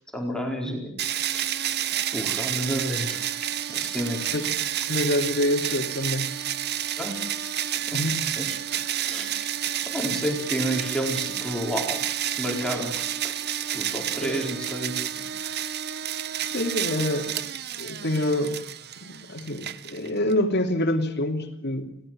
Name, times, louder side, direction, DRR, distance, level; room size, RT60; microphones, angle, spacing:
voice 1, 0.1-1.4 1.9-3.4 3.7-4.3 7.0-7.2 7.9-8.1 8.4-9.4 9.8-13.3 13.7-14.9 15.2-15.7, equal, 5° left, 1 dB, 4.5 m, -31 dB
sound 1, 1.0-20.3, right 10 dB, 55° right, 0.9 m, -30 dB
voice 2, 4.9-6.3 7.9-8.2 14.2-14.4 16.4-17.4 17.8-18.6 19.0-21.9, left 1 dB, 55° left, 5 dB, 2.9 m, -26 dB
28.5 x 17.5 x 7.7 m, 0.73 s
head